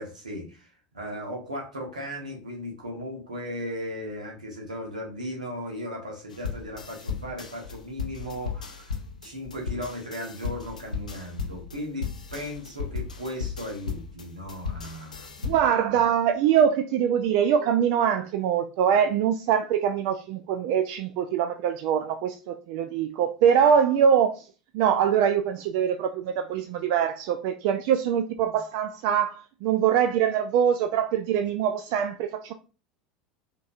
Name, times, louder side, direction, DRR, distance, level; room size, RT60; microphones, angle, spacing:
voice 1, 0.0-15.4 15.9-16.0, equal, 90° right, 1.3 m, -36 dB
sound 1, 6.3-15.8, left 5 dB, 90° left, 0.5 m, -35 dB
voice 2, 15.4-24.4 24.7-32.5, right 8 dB, 60° right, 0.4 m, -23 dB
5.2 x 3.1 x 2.4 m
hypercardioid pair, 75°, 4 cm